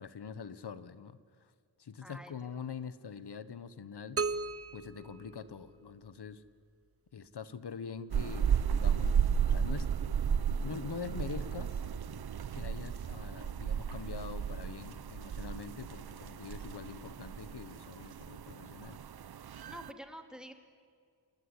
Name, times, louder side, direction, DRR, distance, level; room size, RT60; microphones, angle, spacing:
voice 1, 0.0-1.5 1.8-4.2 4.7-6.4 7.1-10.2 10.6-11.8 12.5-19.0, left 6 dB, 70° left, 15 dB, 1.3 m, -44 dB
voice 2, 2.0-2.3 19.7-20.5, equal, ahead, 5 dB, 2.9 m, -47 dB
sound 1, 4.2-6.1, right 4 dB, 35° right, 0.9 m, -37 dB
sound 2, 8.1-19.9, right 7 dB, 65° right, 0.8 m, -34 dB
28.5 x 19.0 x 9.9 m, 2.1 s
wide cardioid pair, 90°, 41 cm